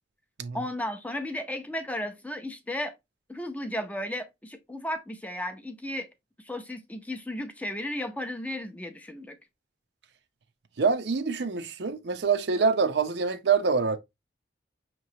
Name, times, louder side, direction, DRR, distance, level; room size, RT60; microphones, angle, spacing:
voice 1, 0.5-2.9 3.3-6.1 6.5-9.4, left 1 dB, 10° left, 0.5 m, -34 dB
voice 2, 10.8-14.0, right 5 dB, 65° right, 0.6 m, -25 dB
5.7 x 3.0 x 2.7 m
head